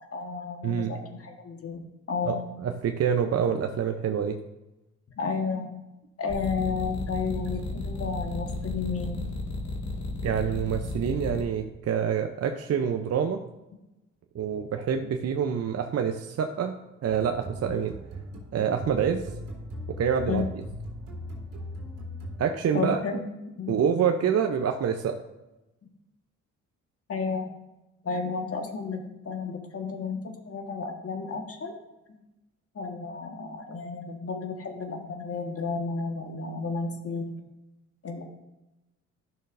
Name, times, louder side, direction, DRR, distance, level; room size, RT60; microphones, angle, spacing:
voice 1, 0.0-1.8 2.1-2.4 5.2-5.7 6.2-9.2 20.3-20.4 22.7-23.2 23.6-23.8 27.1-27.5 28.0-31.7 32.7-37.3 38.0-38.2, left 5 dB, 45° left, 4 dB, 1.5 m, -32 dB
voice 2, 0.6-1.0 2.2-4.4 10.2-13.4 14.3-16.7 17.0-17.9 18.5-19.2 19.9-20.4 22.4-23.0 23.7-25.2, right 7 dB, 50° right, 5 dB, 0.6 m, -26 dB
sound 1, 6.3-11.4, left 2 dB, 60° left, 1.9 m, -33 dB
sound 2, 17.1-22.8, left 1 dB, 85° right, 2.1 m, -39 dB
12.0 x 6.4 x 2.6 m, 0.99 s
supercardioid pair, 60°, 32 cm